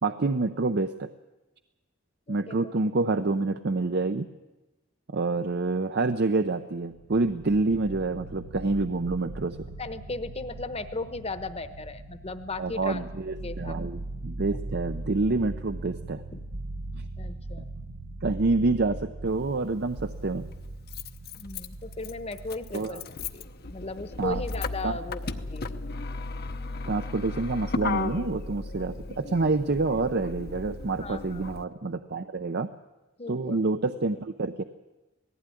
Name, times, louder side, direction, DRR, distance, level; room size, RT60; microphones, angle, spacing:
voice 1, 0.0-1.1 2.3-4.3 5.1-9.7 12.6-16.2 16.9-17.0 18.2-20.5 22.7-23.0 24.2-24.4 24.8-25.0 26.9-32.7 33.3-34.6, right 3 dB, 55° right, 9 dB, 0.7 m, -27 dB
voice 2, 2.3-2.9 5.3-5.4 9.8-13.0 13.4-13.8 16.3-16.4 17.2-17.7 21.4-23.0 23.3-23.4 23.7-25.2 25.5-25.7 31.0-31.4 33.2-33.6, left 3 dB, 30° left, 11 dB, 1.1 m, -36 dB
sound 1, 6.8-24.2, right 2 dB, 80° right, 1.3 m, -40 dB
Motor vehicle (road), 19.3-19.4 20.5-31.6, left 3 dB, 50° left, 0.9 m, -35 dB
18.5 x 15.0 x 9.9 m, 1.1 s
head